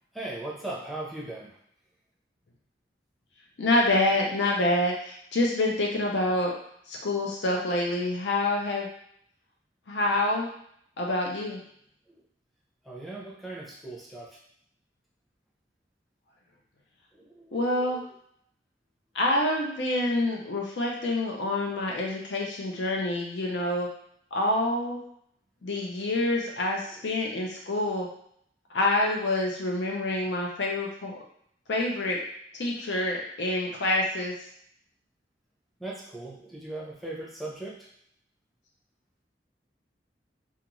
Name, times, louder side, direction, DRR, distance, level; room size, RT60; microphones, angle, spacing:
voice 1, 0.1-1.6 12.1-12.2 12.8-14.4 17.1-18.1 26.9-27.2 35.8-37.9, right 2 dB, ahead, -6 dB, 0.6 m, -39 dB
voice 2, 3.6-6.5 6.9-8.9 9.9-10.5 11.0-11.6 17.5-18.0 19.1-23.9 24.3-25.0 25.6-28.1 28.7-31.1 31.7-32.2 32.5-34.3, left 1 dB, 85° left, -1 dB, 0.5 m, -27 dB
2.4 x 2.4 x 3.0 m, 0.68 s
head